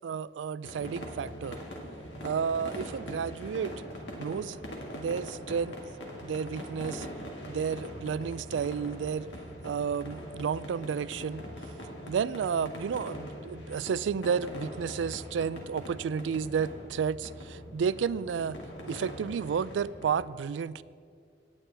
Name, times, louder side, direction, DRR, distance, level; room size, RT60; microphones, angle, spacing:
voice 1, 0.0-1.6 2.2-3.7 4.2-4.6 4.9-5.7 6.2-7.1 7.5-9.3 9.6-11.5 12.1-18.6 18.9-20.8, right 6 dB, 85° right, 18 dB, 0.3 m, -31 dB
sound 1, 0.6-20.1, equal, 90° left, 1.8 m, -42 dB
18.0 x 9.6 x 3.4 m, 2.3 s
head